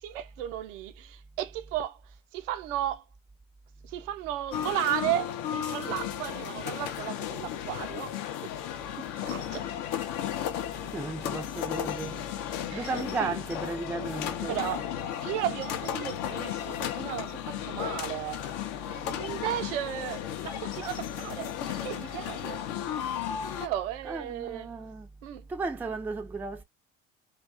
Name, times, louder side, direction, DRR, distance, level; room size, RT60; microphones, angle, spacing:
voice 1, 0.0-2.0 2.3-3.0 3.8-8.2 8.4-8.5 9.0-9.7 12.7-13.4 14.5-14.9 15.2-18.4 19.2-22.6 23.6-24.7 25.2-25.4, right 12 dB, 70° right, 0.5 m, -34 dB
sound 1, 4.5-23.7, left 10 dB, 60° left, 0.5 m, -34 dB
voice 2, 10.9-12.2 12.7-14.5 18.9-19.2 20.8-20.9 21.7-21.8 24.1-25.1 25.5-26.6, right 3 dB, 5° right, 0.4 m, -35 dB
2.3 x 2.3 x 2.3 m
hypercardioid pair, 65°, 39 cm